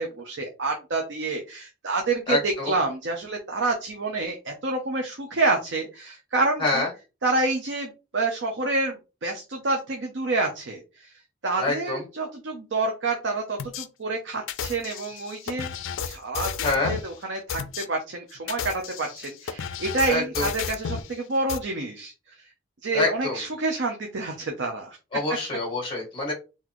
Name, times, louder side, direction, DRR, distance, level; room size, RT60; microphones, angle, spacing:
voice 1, 0.0-6.8 7.2-11.1 11.4-15.7 16.0-22.1 22.8-25.0, right 3 dB, 70° right, 2 dB, 0.7 m, -28 dB
voice 2, 2.3-2.7 6.6-6.9 11.6-12.0 16.6-16.9 20.1-20.5 22.9-23.4 25.1-26.3, left 2 dB, 25° left, -1 dB, 1.8 m, -26 dB
sound 1, 13.6-13.9 14.5-17.1 17.5-17.8 18.4-21.1 21.5-21.6, left 7 dB, 85° left, 0.4 m, -32 dB
4.0 x 2.8 x 3.0 m, 0.30 s
head